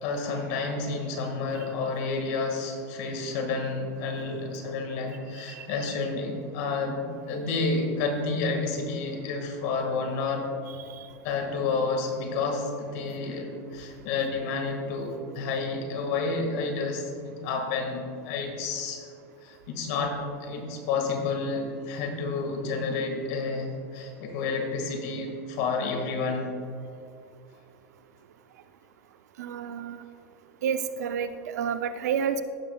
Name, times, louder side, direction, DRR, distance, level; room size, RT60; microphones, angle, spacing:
voice 1, 0.0-10.5 11.2-19.1 19.4-26.5, left 4 dB, 65° left, 4 dB, 1.8 m, -30 dB
voice 2, 10.7-11.1 29.4-30.0 30.6-32.4, right 7 dB, 90° right, 10 dB, 0.6 m, -30 dB
16.0 x 7.4 x 2.3 m, 2.4 s
supercardioid pair, 125°, 9 cm